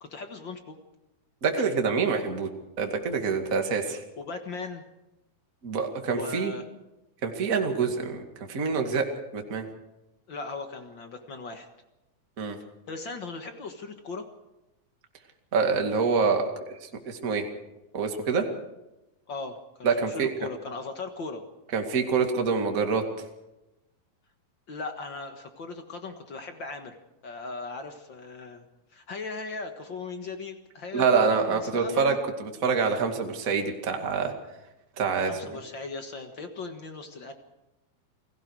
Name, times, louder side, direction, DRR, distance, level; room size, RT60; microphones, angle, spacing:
voice 1, 0.0-0.8 1.6-1.7 3.8-4.8 6.1-6.6 10.3-11.7 12.9-14.2 19.3-21.4 24.7-26.9 27.2-28.6 28.9-32.2 35.2-37.3, left 3 dB, 55° left, 6 dB, 1.4 m, -38 dB
voice 2, 1.4-2.5 2.8-4.0 5.6-6.5 7.2-9.7 12.4-12.6 15.5-16.4 16.8-17.5 17.9-18.5 19.8-20.3 21.7-23.0 30.9-34.3 35.0-35.6, right 5 dB, 30° right, 4 dB, 2.0 m, -26 dB
29.0 x 19.0 x 4.8 m, 0.96 s
omnidirectional pair, 4.3 m